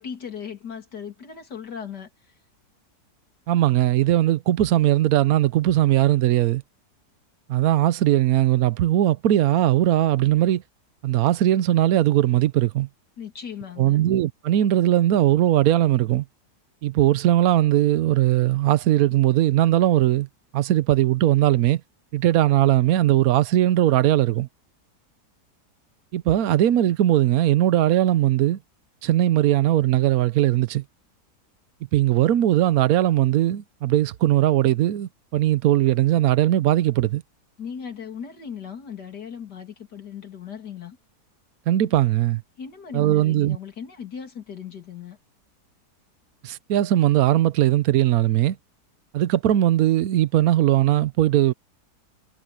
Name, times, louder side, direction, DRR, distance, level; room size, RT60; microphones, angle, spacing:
voice 1, 0.0-2.1 13.2-14.0 37.6-41.0 42.6-45.2, left 7 dB, 85° left, 3.2 m, -37 dB
voice 2, 3.5-6.6 7.5-10.6 11.0-12.9 13.8-16.2 16.8-20.3 20.5-21.8 22.1-24.5 26.1-28.6 29.0-30.8 31.9-37.2 41.7-42.4 42.9-43.6 46.4-48.6 49.1-51.5, right 13 dB, 65° right, 1.1 m, -19 dB
omnidirectional pair, 1.7 m